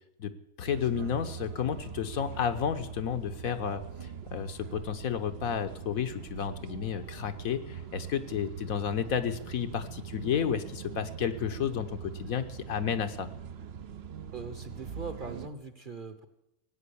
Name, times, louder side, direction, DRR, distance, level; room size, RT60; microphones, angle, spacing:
voice 1, 0.6-13.3, left 8 dB, 70° left, 9 dB, 1.4 m, -32 dB
sound 1, 0.7-15.5, right 7 dB, 50° right, 0.9 m, -43 dB
voice 2, 14.3-16.3, right 4 dB, 35° right, 10 dB, 1.2 m, -41 dB
18.0 x 8.7 x 8.5 m, 0.83 s
omnidirectional pair, 1.6 m